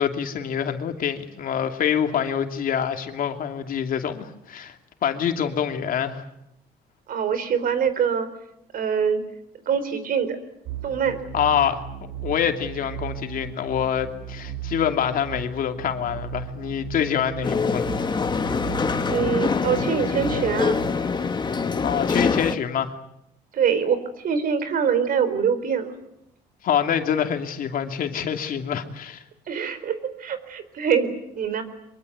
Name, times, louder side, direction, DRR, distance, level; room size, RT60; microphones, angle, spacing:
voice 1, 0.0-4.8 5.0-6.2 11.3-11.8 12.2-17.9 21.8-22.9 26.6-29.2, left 8 dB, 55° left, 6 dB, 2.7 m, -25 dB
voice 2, 7.1-8.3 8.7-9.2 9.7-10.4 10.8-11.2 19.0-20.8 23.5-26.0 29.5-31.6, right 7 dB, 55° right, 12 dB, 4.2 m, -24 dB
sound 1, 10.7-20.9, right 7 dB, 85° right, 3.0 m, -36 dB
sound 2, 17.4-22.5, left 5 dB, 25° left, 1.9 m, -24 dB
24.0 x 23.0 x 9.4 m, 0.81 s
cardioid pair, 110°, 17 cm